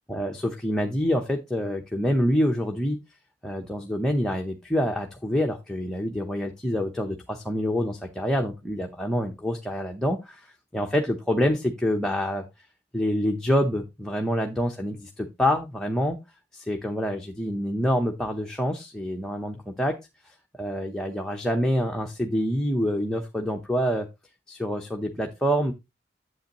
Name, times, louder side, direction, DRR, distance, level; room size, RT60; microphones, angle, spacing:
voice 1, 0.1-3.0 3.4-12.5 12.9-16.2 16.5-20.0 20.2-24.1 24.5-25.7, equal, 5° left, 1 dB, 0.7 m, -26 dB
8.5 x 7.9 x 2.9 m, 0.23 s
head